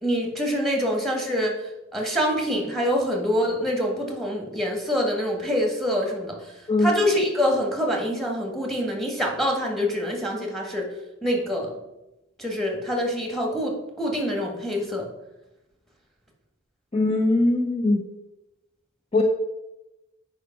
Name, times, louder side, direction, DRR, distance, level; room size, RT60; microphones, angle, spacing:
voice 1, 0.0-10.9 11.2-11.7 12.4-15.1, equal, ahead, 0 dB, 1.7 m, -25 dB
voice 2, 16.9-18.0 19.1-19.2, left 2 dB, 25° left, 2 dB, 0.7 m, -21 dB
8.1 x 5.1 x 5.9 m, 0.97 s
head